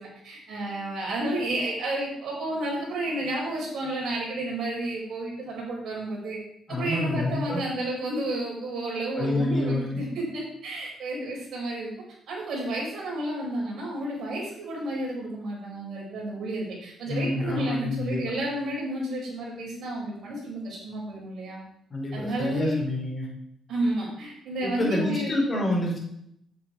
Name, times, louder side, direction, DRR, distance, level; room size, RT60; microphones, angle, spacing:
voice 1, 0.0-6.4 6.7-11.9 12.3-21.6 22.1-22.8 23.7-25.4, right 1 dB, 65° right, -3 dB, 4.9 m, -31 dB
voice 2, 6.7-7.6 9.2-10.0 17.1-18.2 21.9-23.3 24.6-26.0, left 1 dB, 25° left, -2 dB, 4.6 m, -28 dB
8.6 x 8.3 x 4.8 m, 0.74 s
cardioid pair, 90°, 0 cm